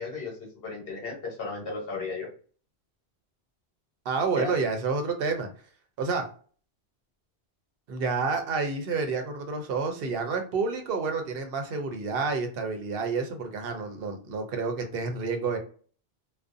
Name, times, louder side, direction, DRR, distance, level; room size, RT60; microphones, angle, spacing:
voice 1, 0.0-2.3 4.3-4.5, left 4 dB, 60° left, -1 dB, 1.1 m, -35 dB
voice 2, 4.1-5.5 6.0-6.3 7.9-15.6, right 4 dB, 65° right, 5 dB, 0.7 m, -29 dB
2.4 x 2.1 x 2.5 m, 0.42 s
omnidirectional pair, 1.1 m